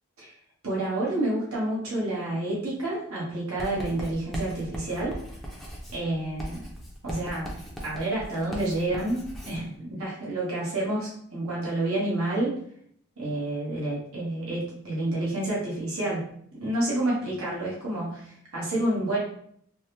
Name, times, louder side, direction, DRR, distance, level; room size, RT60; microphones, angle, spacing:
voice 1, 0.6-5.2 5.9-6.7 7.0-7.6 7.8-12.6 13.2-19.2, right 1 dB, 85° right, -5 dB, 1.1 m, -29 dB
Writing, 3.6-9.6, equal, ahead, 0.5 m, -39 dB
3.4 x 2.1 x 2.9 m, 0.64 s
head